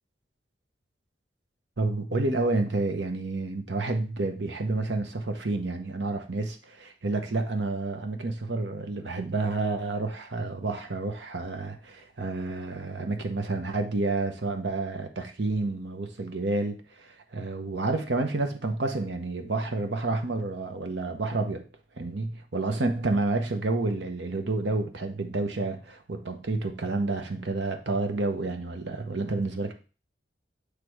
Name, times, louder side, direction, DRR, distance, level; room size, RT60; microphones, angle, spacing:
voice 1, 1.8-21.6 22.0-29.7, right 3 dB, 75° right, 0.9 m, -29 dB
8.3 x 3.3 x 4.7 m
head